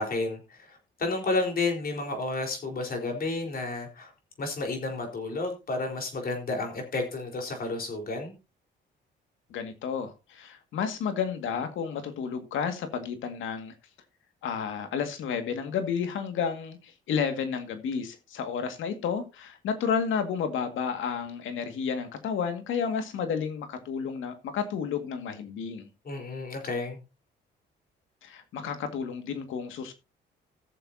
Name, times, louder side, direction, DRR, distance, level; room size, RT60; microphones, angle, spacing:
voice 1, 0.0-4.1 4.4-8.3 26.0-27.0, left 3 dB, 50° left, 4.1 m, -31 dB
voice 2, 9.5-13.7 14.4-25.9 28.2-29.9, left 6 dB, 80° left, 2.0 m, -31 dB
17.5 x 7.1 x 2.7 m
cardioid pair, 90°, 20 cm